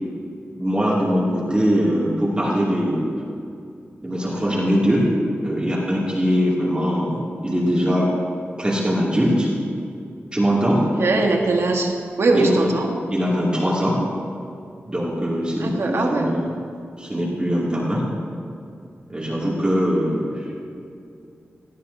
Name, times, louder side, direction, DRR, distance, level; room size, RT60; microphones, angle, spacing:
voice 1, 0.5-3.1 4.0-5.1 5.4-8.1 8.6-9.5 10.3-10.8 12.3-12.7 13.1-14.0 14.9-16.5 17.0-18.1 19.1-20.5, equal, 20° right, -7 dB, 2.5 m, -21 dB
voice 2, 11.0-13.0 15.6-16.4, right 2 dB, 70° right, 1 dB, 1.5 m, -21 dB
17.5 x 12.5 x 2.8 m, 2.5 s
wide cardioid pair, 70°, 5 cm